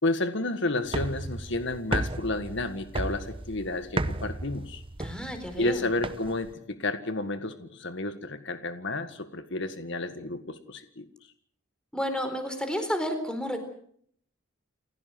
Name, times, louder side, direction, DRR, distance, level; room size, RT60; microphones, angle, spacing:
voice 1, 0.0-4.8 5.6-11.1, left 2 dB, 60° left, 9 dB, 1.7 m, -31 dB
sound 1, 0.8-6.5, right 2 dB, 25° right, 0.9 m, -34 dB
voice 2, 5.0-5.9 11.9-13.6, equal, 5° left, 7 dB, 4.2 m, -31 dB
29.5 x 16.0 x 7.8 m, 0.64 s
head